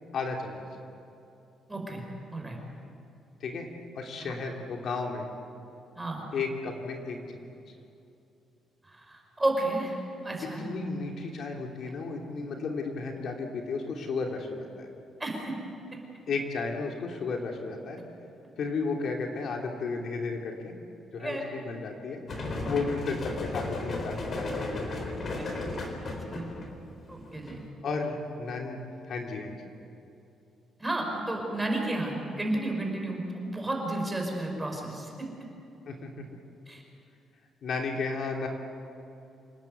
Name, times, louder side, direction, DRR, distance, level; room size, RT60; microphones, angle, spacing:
voice 1, 0.1-0.6 3.4-3.7 3.9-5.3 6.3-7.5 10.4-14.9 16.3-18.0 18.6-20.7 21.1-22.2 22.7-25.3 27.8-29.6 35.9-36.2 37.6-38.5, left 4 dB, 55° left, 1 dB, 2.8 m, -33 dB
voice 2, 1.7-2.0 2.3-2.6 4.2-4.3 5.9-6.3 8.8-10.6 15.2-15.6 15.9-16.0 21.2-21.4 25.4-25.5 26.0-26.5 27.1-27.6 30.8-35.3 36.7-36.8, right 2 dB, 10° right, 1 dB, 5.1 m, -32 dB
sound 1, 22.3-27.7, left 2 dB, 40° left, 4.0 m, -35 dB
28.0 x 18.5 x 8.1 m, 2.7 s
cardioid pair, 145°, 0 cm